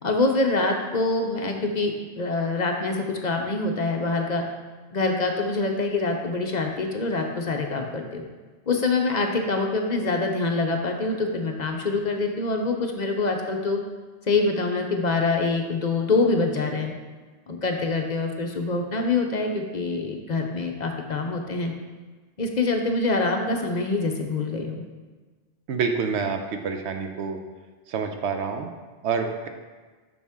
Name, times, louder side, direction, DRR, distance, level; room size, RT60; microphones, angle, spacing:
voice 1, 0.0-4.4 4.9-8.2 8.7-13.8 14.3-16.9 17.5-21.7 22.4-24.8, left 3 dB, 50° left, 3 dB, 0.7 m, -25 dB
voice 2, 25.7-27.4 27.9-28.7 29.0-29.5, right 5 dB, 90° right, 5 dB, 1.0 m, -27 dB
7.0 x 6.1 x 3.6 m, 1.4 s
omnidirectional pair, 1.1 m